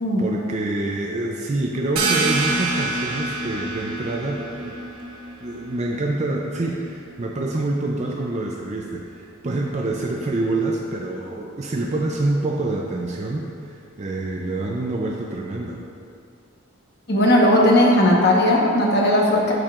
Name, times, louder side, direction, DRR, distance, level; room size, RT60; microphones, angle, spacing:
voice 1, 0.2-4.8 5.4-15.8, right 2 dB, 35° right, -1 dB, 0.5 m, -26 dB
sound 1, 2.0-7.3, right 3 dB, 90° right, 1.1 m, -27 dB
voice 2, 17.1-19.5, left 1 dB, 50° left, -3 dB, 1.1 m, -17 dB
12.5 x 4.5 x 2.5 m, 2.3 s
head